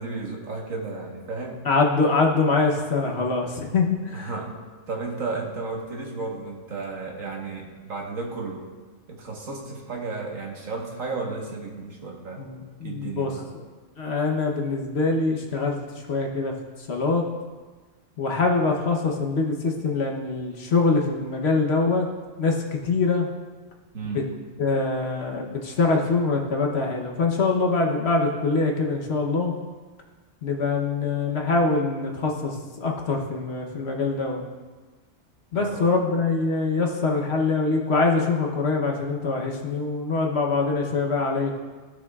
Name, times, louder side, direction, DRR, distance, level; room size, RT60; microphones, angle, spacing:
voice 1, 0.0-1.6 4.1-4.5 4.9-8.7 9.1-12.5 12.8-13.4 23.9-24.2 35.5-35.9, right 3 dB, 80° right, -1 dB, 1.7 m, -33 dB
voice 2, 1.6-4.3 12.4-13.6 14.0-17.3 18.2-22.1 22.4-23.3 24.0-24.2 24.6-29.5 30.4-34.5 35.5-41.6, left 3 dB, 55° left, 1 dB, 1.1 m, -24 dB
15.5 x 6.1 x 2.4 m, 1.4 s
omnidirectional pair, 1.4 m